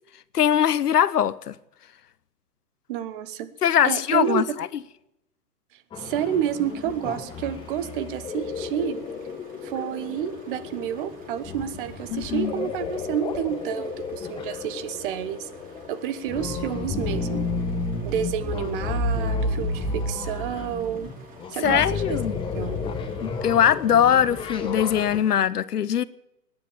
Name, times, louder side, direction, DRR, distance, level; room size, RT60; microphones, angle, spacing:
voice 1, 0.3-1.5 3.6-4.4 12.1-12.7 21.6-22.4 23.2-26.0, left 9 dB, 75° left, 0.9 m, -21 dB
voice 2, 2.9-3.5 3.8-4.5 6.0-9.0 9.6-15.5 15.9-17.5 18.0-21.1 21.5-22.2 22.5-22.8, right 10 dB, 35° right, 1.1 m, -29 dB
sound 1, 5.9-25.2, left 3 dB, 10° left, 1.0 m, -32 dB
sound 2, 6.0-25.4, right 2 dB, 15° right, 2.5 m, -50 dB
18.5 x 10.0 x 7.1 m
figure-of-eight pair, 125°, 47 cm